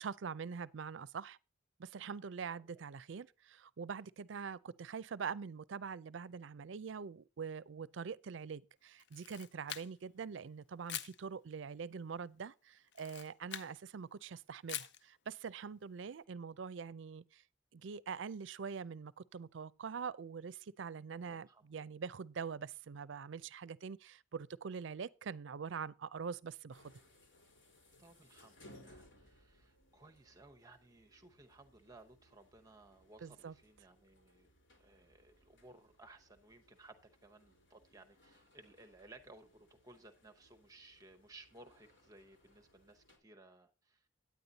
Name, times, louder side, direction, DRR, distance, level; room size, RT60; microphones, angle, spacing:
voice 1, 0.0-1.4 1.8-17.4 17.7-27.0 33.2-33.5, right 6 dB, 75° right, 0.4 m, -44 dB
voice 2, 2.4-2.8 21.2-21.6 28.0-34.5 34.8-44.2, right 2 dB, 20° right, 0.8 m, -60 dB
Camera, 9.0-10.2 10.9-11.2 12.9-13.7 14.7-15.0, left 10 dB, 60° left, 0.5 m, -44 dB
sound 1, 26.7-43.2, left 1 dB, 75° left, 3.8 m, -65 dB
9.5 x 9.5 x 4.0 m
head